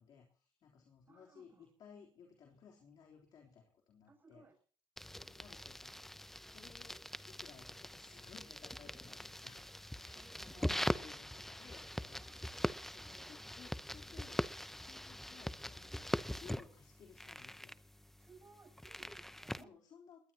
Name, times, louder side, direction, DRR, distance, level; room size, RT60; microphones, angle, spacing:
voice 1, 0.0-4.5 5.1-9.7 9.9-17.8 19.5-20.3, left 6 dB, 60° left, 1 dB, 3.5 m, -59 dB
voice 2, 1.1-1.7 4.1-4.6 10.1-11.1 11.3-11.4 12.1-13.4 18.2-19.7, right 4 dB, 25° right, 4 dB, 7.5 m, -63 dB
sound 1, 5.0-19.6, left 1 dB, 5° left, 0.8 m, -42 dB
20.5 x 20.0 x 2.9 m, 0.41 s
cardioid pair, 90°, 8 cm